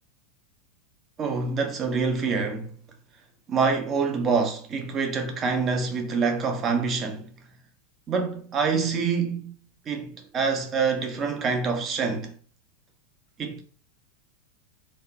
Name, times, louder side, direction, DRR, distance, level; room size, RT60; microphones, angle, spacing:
voice 1, 1.2-2.8 3.5-7.3 8.1-9.6 9.9-12.3 13.4-13.6, right 5 dB, 25° right, 0.9 m, -26 dB
4.4 x 2.7 x 2.9 m
figure-of-eight pair, 90°, 0 cm